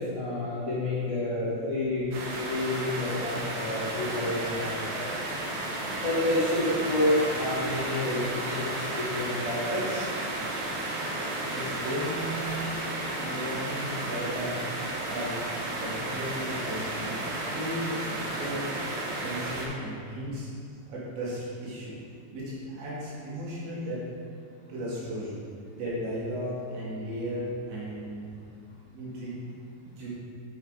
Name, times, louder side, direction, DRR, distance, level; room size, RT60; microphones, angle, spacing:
voice 1, 0.0-2.1 2.4-5.1 5.9-10.0, left 1 dB, 55° left, -11 dB, 0.8 m, -29 dB
sound 1, 2.1-19.7, right 1 dB, 90° right, 4.0 m, -33 dB
voice 2, 11.5-12.8 13.2-14.6 15.1-15.4 15.8-17.2 17.5-18.7 19.2-20.5 20.9-22.0 22.3-24.0 24.7-25.4 25.7-28.3 28.9-29.4 29.8-30.1, equal, 70° right, -8 dB, 4.6 m, -35 dB
8.5 x 6.5 x 5.1 m, 2.2 s
omnidirectional pair, 5.3 m